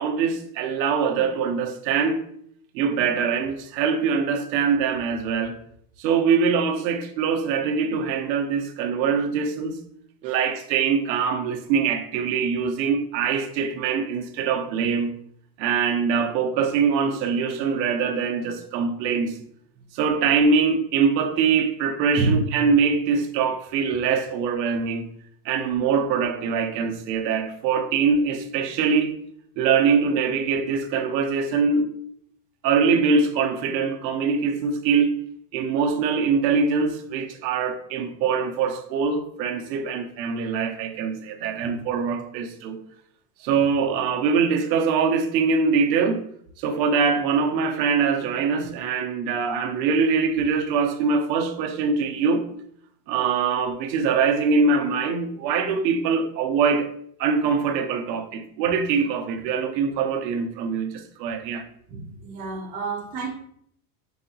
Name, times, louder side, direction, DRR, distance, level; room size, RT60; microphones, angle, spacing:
voice 1, 0.0-2.2 2.7-5.6 6.0-9.8 10.2-15.1 15.6-19.4 19.9-25.1 25.4-29.2 29.6-31.9 32.6-35.2 35.5-42.8 43.4-46.2 46.6-52.4 53.1-56.9 57.2-61.6, right 5 dB, 90° right, 0.8 m, -23 dB
voice 2, 61.9-63.3, right 3 dB, 20° right, 0.4 m, -28 dB
4.8 x 2.8 x 2.7 m
supercardioid pair, 170°, 50 cm